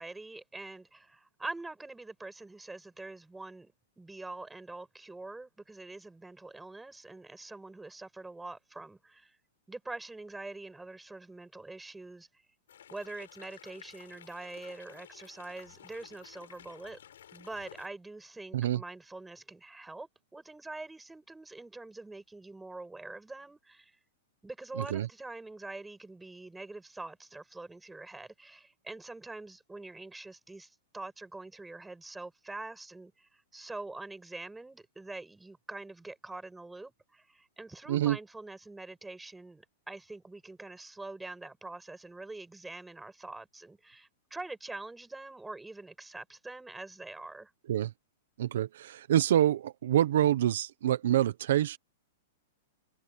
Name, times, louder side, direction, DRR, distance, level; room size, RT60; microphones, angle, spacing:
voice 1, 0.0-9.4 9.7-12.4 12.9-17.0 17.3-24.0 24.4-47.5, right 2 dB, 5° right, 7.6 m, -44 dB
sound 1, 12.7-17.9, left 10 dB, 90° left, 7.7 m, -53 dB
voice 2, 48.4-51.8, right 11 dB, 65° right, 0.9 m, -26 dB
supercardioid pair, 175°, 0 cm